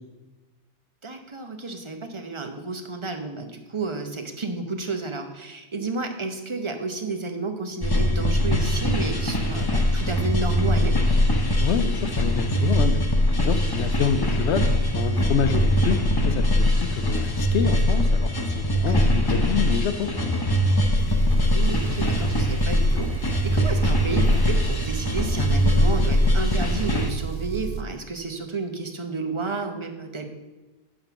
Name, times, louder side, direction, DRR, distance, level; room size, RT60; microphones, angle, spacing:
voice 1, 1.0-11.0 18.9-19.7 21.5-30.3, right 3 dB, 30° right, 5 dB, 0.9 m, -31 dB
sound 1, 7.8-27.1, left 1 dB, 25° left, 0.7 m, -22 dB
voice 2, 11.6-13.0 13.3-16.0 16.3-20.4, left 7 dB, 75° left, 9 dB, 0.9 m, -27 dB
Engine, 21.0-27.9, right 10 dB, 85° right, 0.9 m, -31 dB
10.5 x 3.8 x 7.2 m, 1.2 s
omnidirectional pair, 1.2 m